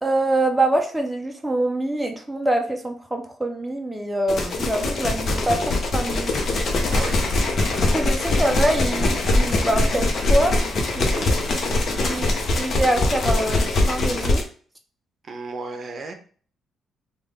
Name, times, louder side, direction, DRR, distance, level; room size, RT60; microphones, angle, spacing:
voice 1, 0.0-5.6 5.9-6.3 7.9-10.6 11.2-11.3 12.1-12.3 12.6-14.5, right 1 dB, 10° right, 2 dB, 0.6 m, -24 dB
sound 1, 4.3-14.4, left 2 dB, 55° left, 0.8 m, -22 dB
voice 2, 6.9-7.3 11.1-11.3 11.8-12.1 15.2-16.1, right 3 dB, 45° right, 5 dB, 0.7 m, -34 dB
3.6 x 2.4 x 3.4 m, 0.44 s
cardioid pair, 90°, 0 cm